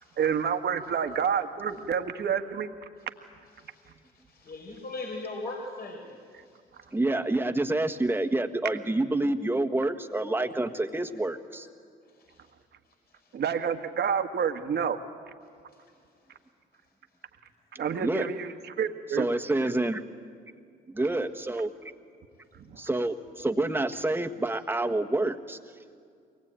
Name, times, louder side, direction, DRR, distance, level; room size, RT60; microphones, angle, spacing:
voice 1, 0.2-2.7 13.3-15.0 17.8-19.3 22.7-22.8, right 7 dB, 55° right, 7 dB, 1.7 m, -28 dB
voice 2, 4.1-6.2 12.3-12.4, left 2 dB, 50° left, 0 dB, 5.0 m, -39 dB
voice 3, 6.9-11.7 18.0-18.3 19.1-20.0 20.9-21.7 22.8-25.6, right 2 dB, 10° right, 5 dB, 1.6 m, -28 dB
23.0 x 19.5 x 9.0 m, 2.2 s
supercardioid pair, 65°, 21 cm